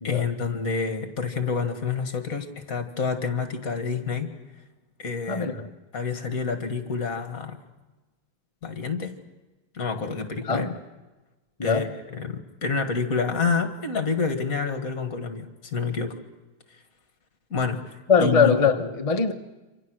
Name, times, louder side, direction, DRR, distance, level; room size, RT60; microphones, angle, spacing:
voice 1, 0.0-4.3 5.0-5.5 5.9-7.6 8.6-9.1 9.7-10.7 11.6-16.2 17.5-18.8, left 5 dB, 45° left, 2.2 m, -28 dB
voice 2, 5.3-5.7 10.4-10.7 11.6-12.0 18.1-19.3, left 5 dB, 25° left, 0.8 m, -22 dB
28.0 x 26.0 x 6.4 m
omnidirectional pair, 2.2 m